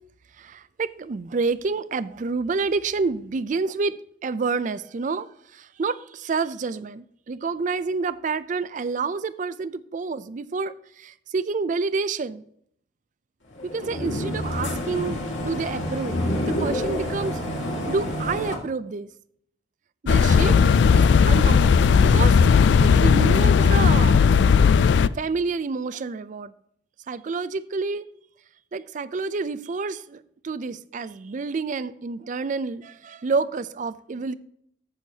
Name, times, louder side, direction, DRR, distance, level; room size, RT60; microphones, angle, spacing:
voice 1, 0.4-12.4 13.6-16.2 16.5-17.4 17.9-19.1 20.0-20.6 20.9-22.4 22.8-24.2 25.1-26.5 27.1-28.1 28.7-34.3, right 4 dB, 40° right, 0.4 m, -28 dB
sound 1, 13.5-18.5, left 1 dB, 80° left, 2.0 m, -28 dB
sound 2, 20.1-25.1, left 6 dB, 65° left, 0.3 m, -16 dB
14.0 x 6.4 x 2.8 m
head